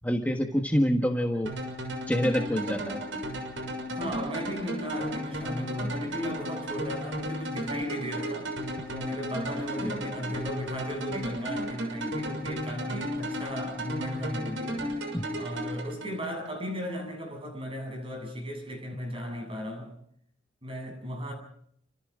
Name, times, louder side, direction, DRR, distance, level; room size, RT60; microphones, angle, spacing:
voice 1, 0.0-1.5 2.1-3.0 15.1-15.2, equal, 10° left, 1.5 m, -26 dB
sound 1, 1.5-16.5, equal, 80° right, 6.4 m, -34 dB
voice 2, 3.8-15.1 15.3-19.9 20.6-21.3, equal, 30° right, 7.7 m, -36 dB
30.0 x 26.5 x 3.8 m
head